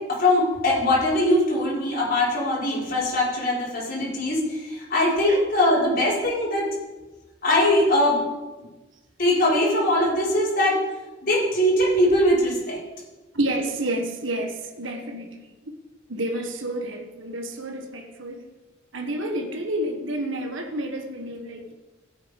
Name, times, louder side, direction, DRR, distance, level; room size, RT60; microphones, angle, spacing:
voice 1, 0.1-6.7 7.4-8.2 9.2-10.8 11.2-12.8, left 1 dB, 50° left, 5.8 m, -21 dB
voice 2, 13.3-15.7 16.1-18.5 18.9-21.7, right 1 dB, 75° right, 1.5 m, -30 dB
16.0 x 9.0 x 5.5 m
head